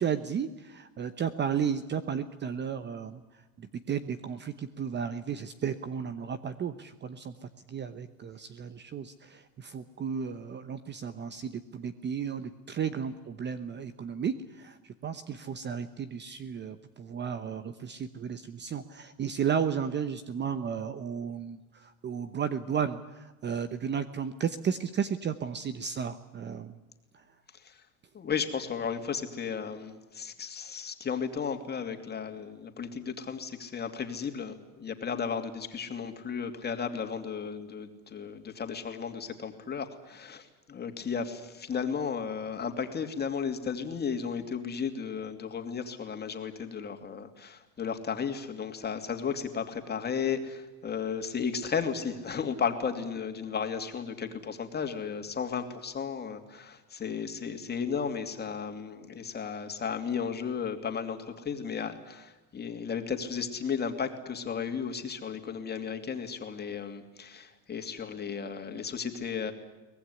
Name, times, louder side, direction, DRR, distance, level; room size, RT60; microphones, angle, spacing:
voice 1, 0.0-26.8 27.1-27.2, right 7 dB, 25° right, 12 dB, 1.0 m, -34 dB
voice 2, 28.1-69.5, left 6 dB, 25° left, 6 dB, 2.8 m, -34 dB
24.0 x 19.0 x 9.8 m, 1.1 s
supercardioid pair, 115°, 43 cm